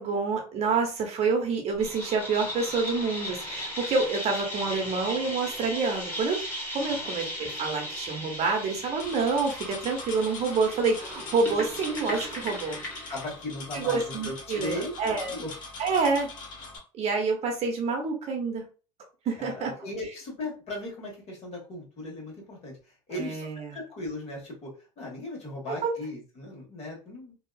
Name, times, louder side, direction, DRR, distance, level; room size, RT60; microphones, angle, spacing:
voice 1, 0.0-6.4 6.7-12.8 13.7-15.4 15.8-16.3 16.9-18.6 19.2-19.7 23.1-23.7 25.8-25.9, right 4 dB, 45° right, 2 dB, 0.9 m, -27 dB
sound 1, 1.8-13.3, equal, 15° left, 1.2 m, -37 dB
sound 2, 9.0-16.8, left 4 dB, 65° left, 0.9 m, -42 dB
voice 2, 13.1-14.9 15.2-15.5 19.4-22.8 23.1-23.5 23.7-27.3, left 1 dB, 45° left, -1 dB, 1.4 m, -37 dB
2.7 x 2.3 x 2.3 m, 0.35 s
supercardioid pair, 100°, 15 cm